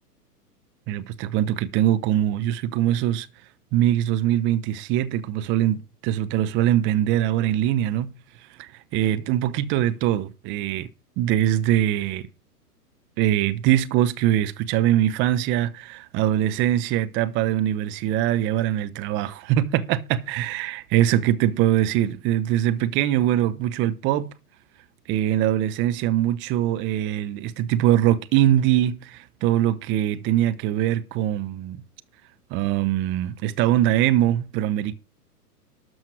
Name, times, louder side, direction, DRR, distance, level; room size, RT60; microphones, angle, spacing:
voice 1, 0.9-3.3 3.7-8.1 8.6-10.9 11.2-12.3 13.2-24.3 25.1-31.8 32.5-34.9, right 12 dB, 25° right, 0.9 m, -22 dB
12.5 x 6.3 x 6.1 m
hypercardioid pair, 120°, 48 cm